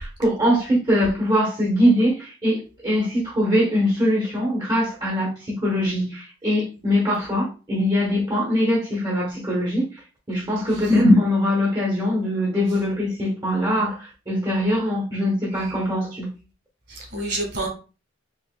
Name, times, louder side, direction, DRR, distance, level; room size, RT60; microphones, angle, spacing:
voice 1, 0.0-9.8 10.3-16.3, equal, 20° right, -3 dB, 0.9 m, -22 dB
voice 2, 16.9-17.7, right 1 dB, 55° right, 0 dB, 1.7 m, -29 dB
4.9 x 2.8 x 2.2 m, 0.34 s
head